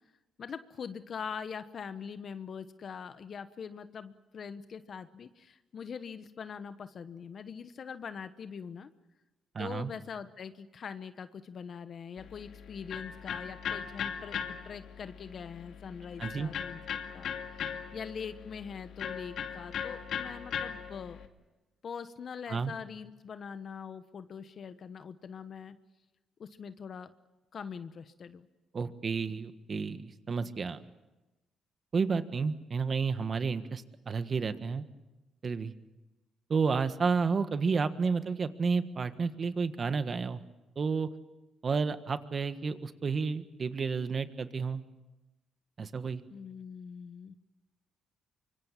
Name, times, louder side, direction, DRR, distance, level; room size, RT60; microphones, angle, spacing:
voice 1, 0.4-8.9 9.6-21.2 21.8-25.8 26.4-27.1 27.5-28.5 46.3-47.3, left 6 dB, 50° left, 11 dB, 1.1 m, -43 dB
voice 2, 9.5-9.9 16.2-16.5 22.5-22.7 28.7-30.8 31.9-34.8 35.4-35.7 36.5-40.4 40.7-41.1 41.6-44.8 45.8-46.2, right 5 dB, 40° right, 11 dB, 1.6 m, -31 dB
Electric guitar, 12.2-21.3, left 7 dB, 70° left, 2.4 m, -39 dB
25.0 x 24.0 x 7.4 m, 1.1 s
cardioid pair, 90°, 0 cm